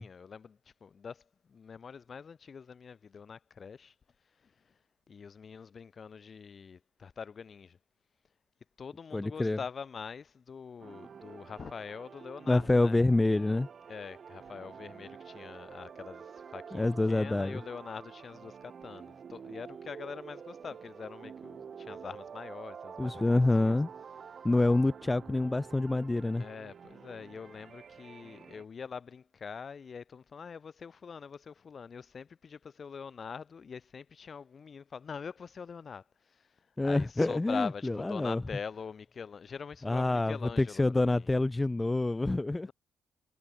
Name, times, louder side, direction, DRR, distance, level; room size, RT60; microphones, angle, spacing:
voice 1, 0.0-3.9 4.4-4.8 5.1-7.8 8.8-13.0 13.9-23.7 26.4-41.3 42.7-42.8, left 6 dB, 45° left, 4.8 m, -44 dB
voice 2, 9.1-9.6 12.5-13.7 16.7-17.6 23.0-23.9 24.4-26.4 36.8-38.4 39.8-42.7, left 2 dB, 15° left, 1.1 m, -27 dB
sound 1, 10.8-28.6, right 6 dB, 50° right, 5.6 m, -48 dB
cardioid pair, 90°, 0 cm